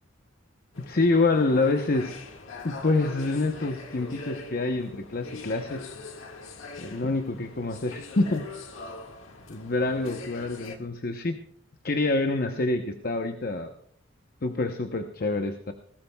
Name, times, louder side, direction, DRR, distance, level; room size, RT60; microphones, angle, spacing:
sound 1, 0.7-10.8, left 3 dB, 80° left, 1.8 m, -42 dB
voice 1, 0.8-2.2 2.6-5.9 6.8-8.5 9.5-11.4 11.8-13.7 14.4-15.7, left 2 dB, 50° left, 6 dB, 0.9 m, -26 dB
20.5 x 17.5 x 2.3 m, 0.62 s
head